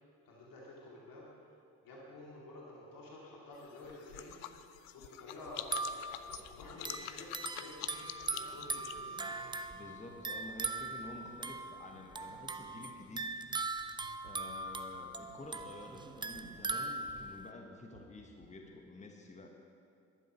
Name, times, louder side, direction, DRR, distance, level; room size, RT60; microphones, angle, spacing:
voice 1, 0.2-1.3 1.8-4.4 4.9-9.6, left 1 dB, 50° left, -4 dB, 2.6 m, -51 dB
sound 1, 3.5-9.7, left 13 dB, 70° left, 0.6 m, -47 dB
sound 2, 5.6-17.5, right 3 dB, 10° right, 0.5 m, -40 dB
sound 3, 7.6-18.8, right 3 dB, 85° right, 1.3 m, -62 dB
voice 2, 9.7-13.2 14.2-19.5, left 2 dB, 15° left, 3 dB, 1.2 m, -50 dB
11.0 x 10.5 x 5.4 m, 2.4 s
figure-of-eight pair, 45°, 42 cm